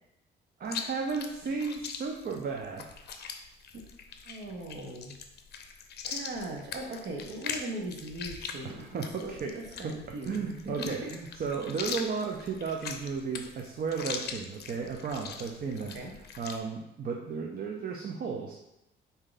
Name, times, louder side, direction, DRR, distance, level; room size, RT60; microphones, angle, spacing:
Chewing mastication, 0.6-16.6, left 6 dB, 55° left, 0.5 m, -41 dB
voice 1, 0.6-2.9 8.6-9.6 9.8-10.0 10.3-16.0 16.4-18.5, right 5 dB, 50° right, 2 dB, 0.5 m, -34 dB
voice 2, 4.2-5.2 6.0-11.1 15.8-16.1, right 1 dB, 65° right, 1 dB, 1.0 m, -39 dB
4.4 x 2.8 x 3.9 m, 0.88 s
cardioid pair, 90°, 20 cm